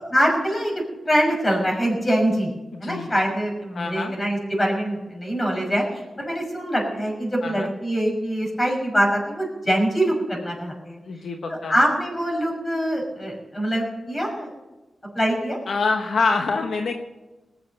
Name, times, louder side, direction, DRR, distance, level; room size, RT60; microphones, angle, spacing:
voice 1, 0.0-2.5 2.8-11.0 11.5-14.5 15.1-15.6, equal, 25° left, -1 dB, 6.0 m, -24 dB
voice 2, 2.7-3.1 3.7-4.1 7.4-7.7 11.0-11.7 15.7-16.9, left 4 dB, 75° left, 3 dB, 1.2 m, -25 dB
20.0 x 7.7 x 6.6 m, 1.1 s
cardioid pair, 80°, 0 cm